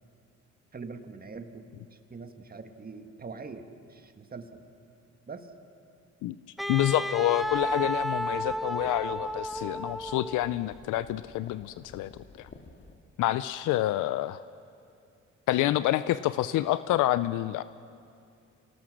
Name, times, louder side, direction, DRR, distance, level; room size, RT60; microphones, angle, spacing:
voice 1, 0.7-4.6 5.3-5.5, right 4 dB, 30° right, 7 dB, 1.6 m, -43 dB
Wind instrument woodwind instrument, 6.6-10.6, equal, ahead, 0.7 m, -32 dB
voice 2, 6.7-12.5 13.2-14.4 15.5-17.6, left 14 dB, 85° left, 15 dB, 0.5 m, -28 dB
sound 1, 7.4-13.0, left 3 dB, 40° left, 2.0 m, -53 dB
27.0 x 18.5 x 6.4 m, 2.4 s
cardioid pair, 90°, 30 cm